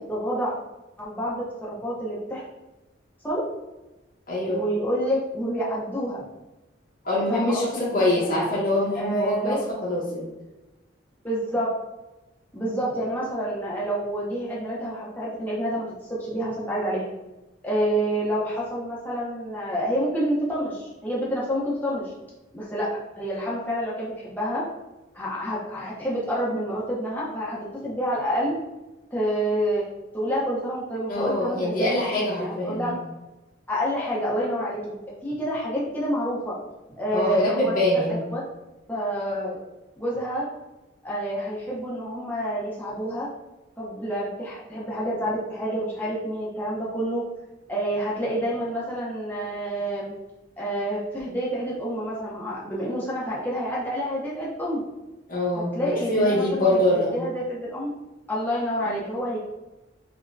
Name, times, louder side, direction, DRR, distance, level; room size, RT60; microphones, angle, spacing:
voice 1, 0.1-0.5 1.0-2.4 3.2-3.4 4.4-6.3 7.3-8.4 8.9-9.6 11.2-11.7 12.5-17.1 17.6-22.1 22.5-24.6 25.1-28.6 29.1-29.8 30.1-32.0 32.4-32.9 33.7-36.6 37.0-37.7 38.1-38.4 38.9-39.6 40.0-40.4 41.0-43.3 43.8-47.2 47.7-50.1 50.6-54.8 55.5-56.8 57.1-57.9 58.3-59.4, equal, 10° left, -7 dB, 0.6 m, -28 dB
voice 2, 4.3-4.6 7.0-10.3 31.1-32.9 37.1-38.2 55.3-55.7 56.1-57.1 58.8-59.0, left 1 dB, 45° left, -6 dB, 1.0 m, -24 dB
5.1 x 2.1 x 2.5 m, 1.1 s
head